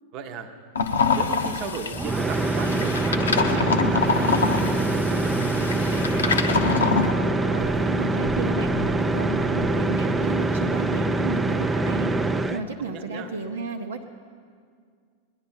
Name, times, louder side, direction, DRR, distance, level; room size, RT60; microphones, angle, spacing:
voice 1, 0.1-0.5 1.1-6.6 12.8-13.3, right 5 dB, 40° right, 7 dB, 1.0 m, -37 dB
sound 1, 0.7-7.1, left 5 dB, 70° left, 0.8 m, -25 dB
sound 2, 1.9-12.6, right 2 dB, 10° right, 0.5 m, -24 dB
sound 3, 6.1-11.4, left 1 dB, 90° left, 1.3 m, -39 dB
voice 2, 7.5-14.0, right 4 dB, 65° right, 2 dB, 0.7 m, -33 dB
20.0 x 10.5 x 4.5 m, 2.1 s
figure-of-eight pair, 90°, 0 cm